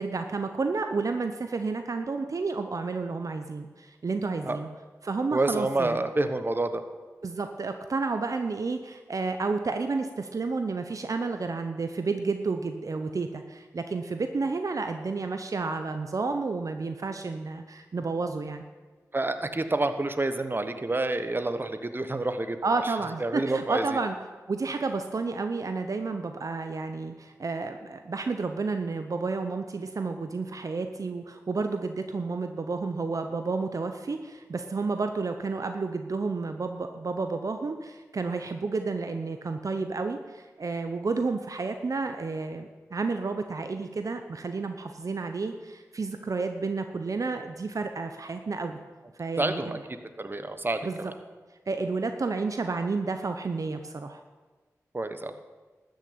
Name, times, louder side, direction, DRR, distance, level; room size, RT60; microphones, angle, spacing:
voice 1, 0.0-4.7 5.0-6.0 7.2-18.6 22.6-24.2 24.5-48.8 49.2-49.8 50.8-51.1 51.7-54.2, right 4 dB, 60° right, 7 dB, 0.8 m, -31 dB
voice 2, 5.3-6.8 19.1-22.6 23.2-24.0 49.4-49.8 50.2-51.1 54.9-55.3, right 2 dB, 35° right, 9 dB, 1.1 m, -28 dB
13.0 x 6.6 x 8.7 m, 1.3 s
cardioid pair, 40°, 6 cm